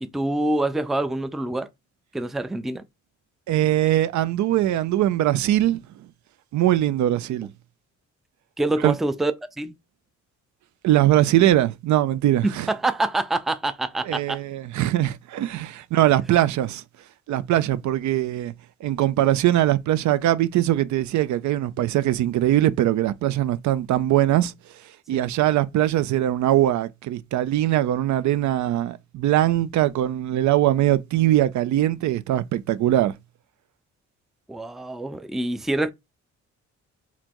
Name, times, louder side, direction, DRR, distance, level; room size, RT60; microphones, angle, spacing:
voice 1, 0.0-1.7 2.1-2.8 8.6-9.7 12.4-14.4 25.1-25.3 34.5-35.9, right 2 dB, ahead, 0.4 m, -26 dB
voice 2, 3.5-5.8 6.5-7.5 8.8-8.9 10.8-12.7 14.0-16.8 17.3-18.5 18.8-24.5 25.1-33.1, right 13 dB, 70° right, 0.5 m, -21 dB
4.1 x 2.8 x 2.9 m
cardioid pair, 90°, 30 cm